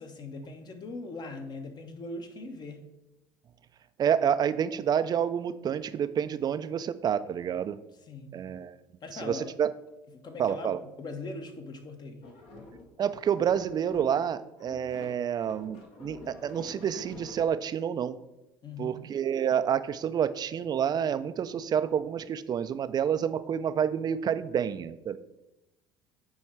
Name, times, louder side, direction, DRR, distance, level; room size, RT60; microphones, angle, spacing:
voice 1, 0.0-2.8 8.1-8.4 9.0-9.5 10.1-12.2 18.6-19.1, left 3 dB, 40° left, 6 dB, 1.2 m, -40 dB
voice 2, 4.0-7.8 8.3-8.8 9.2-9.7 10.4-10.8 13.0-18.2 18.8-25.2, right 8 dB, 35° right, 12 dB, 0.5 m, -28 dB
sound 1, 12.2-14.3 14.6-17.5, left 3 dB, 60° left, 1.7 m, -47 dB
8.8 x 3.2 x 4.6 m, 0.94 s
hypercardioid pair, 70°, 11 cm